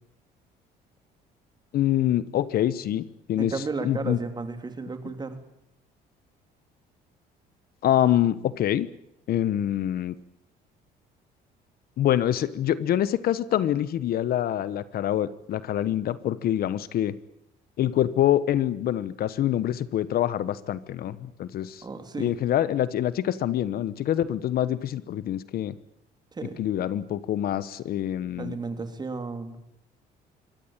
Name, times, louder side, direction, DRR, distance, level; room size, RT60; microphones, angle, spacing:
voice 1, 1.7-3.0 3.3-3.5 3.8-4.2 7.8-8.9 9.3-10.1 12.0-17.1 17.8-21.8 22.2-25.7 26.6-28.6, left 11 dB, 65° left, 16 dB, 1.2 m, -25 dB
voice 2, 3.4-5.4 21.8-22.3 26.3-26.6 28.4-29.6, right 4 dB, 25° right, 8 dB, 3.4 m, -33 dB
24.5 x 19.0 x 9.0 m, 0.80 s
cardioid pair, 110°, 17 cm